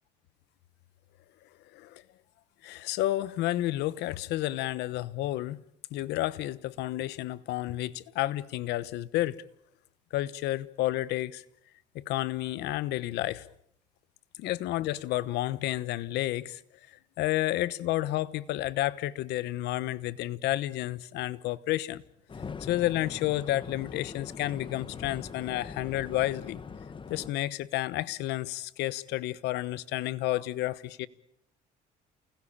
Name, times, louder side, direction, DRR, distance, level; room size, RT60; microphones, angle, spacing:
voice 1, 2.6-5.6 5.9-9.4 10.1-11.4 11.9-13.5 14.4-16.6 16.9-22.0 22.6-26.6 27.1-31.1, left 15 dB, 85° left, 1.1 m, -31 dB
sound 1, 22.3-27.3, left 5 dB, 30° left, 1.6 m, -42 dB
29.0 x 20.5 x 8.8 m
cardioid pair, 110°, 17 cm